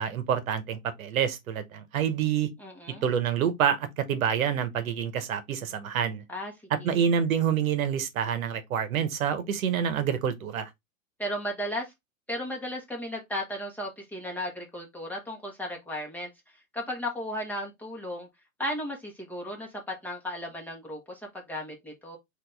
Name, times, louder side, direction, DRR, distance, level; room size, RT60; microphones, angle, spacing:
voice 1, 0.0-2.5 3.0-6.2 6.7-10.7, right 8 dB, 75° right, 1.0 m, -27 dB
voice 2, 2.6-3.0 6.3-6.5 6.8-7.0 11.2-11.9 12.3-16.3 16.7-18.3 18.6-22.2, equal, 5° left, 1.2 m, -35 dB
4.2 x 2.7 x 3.2 m
hypercardioid pair, 135°, 42 cm